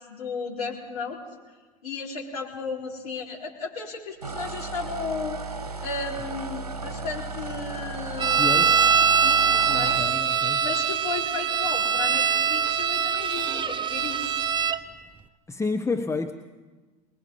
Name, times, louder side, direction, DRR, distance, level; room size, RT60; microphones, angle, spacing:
voice 1, 0.1-1.2 1.8-8.9 9.2-10.0 10.6-14.5, left 4 dB, 75° left, -3 dB, 4.3 m, -34 dB
sound 1, 4.2-10.1, right 3 dB, 85° right, 1.1 m, -35 dB
sound 2, 8.2-14.8, right 6 dB, 25° right, 1.1 m, -23 dB
voice 2, 8.3-8.9 9.6-10.6 15.5-16.3, left 3 dB, 15° left, 6 dB, 1.1 m, -30 dB
24.5 x 21.0 x 5.5 m, 1.3 s
figure-of-eight pair, 70°, 20 cm